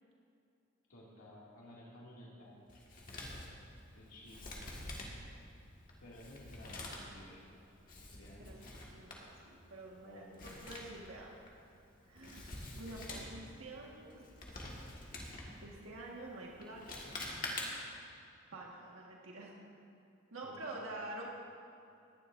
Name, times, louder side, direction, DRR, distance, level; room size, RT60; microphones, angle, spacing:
voice 1, 0.9-2.6 3.9-4.8 6.0-7.4 8.1-8.6 10.0-10.6 20.4-20.8, left 1 dB, 80° left, -6 dB, 2.3 m, -55 dB
Male speech man speaking, 2.7-18.0, left 2 dB, 40° left, 1.7 m, -47 dB
voice 2, 8.4-11.3 12.1-14.5 15.1-15.3 15.6-17.1 18.5-19.6 20.3-21.4, right 2 dB, 70° right, -2 dB, 1.5 m, -48 dB
19.0 x 11.0 x 2.6 m, 2.6 s
head